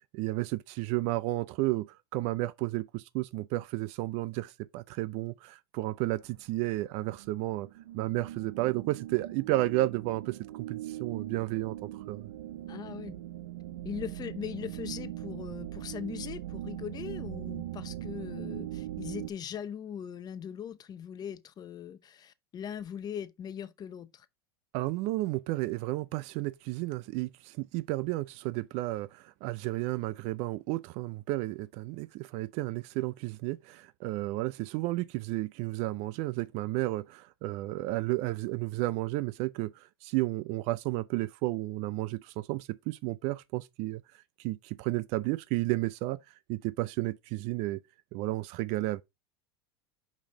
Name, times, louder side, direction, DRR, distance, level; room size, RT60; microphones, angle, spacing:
voice 1, 0.1-7.7 7.9-12.3 24.7-44.0 44.4-46.2 46.5-47.8 48.1-49.0, right 19 dB, 55° right, 0.4 m, -32 dB
sound 1, 6.2-19.3, right 14 dB, 80° right, 0.8 m, -41 dB
voice 2, 12.7-13.2 13.8-24.3, left 9 dB, 30° left, 0.7 m, -40 dB
5.2 x 5.2 x 3.8 m
hypercardioid pair, 100°, 13 cm